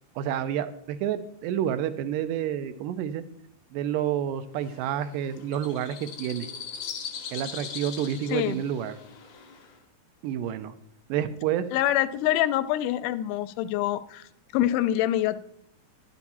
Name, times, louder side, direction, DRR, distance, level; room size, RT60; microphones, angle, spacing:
voice 1, 0.2-3.2 3.7-6.5 7.3-9.0 10.2-10.7 11.1-11.7, right 10 dB, 85° right, 11 dB, 2.2 m, -29 dB
sound 1, 4.6-9.8, left 6 dB, 65° left, 1.2 m, -40 dB
voice 2, 11.7-15.4, left 13 dB, 85° left, 13 dB, 2.1 m, -26 dB
11.0 x 7.0 x 4.2 m, 0.68 s
omnidirectional pair, 3.7 m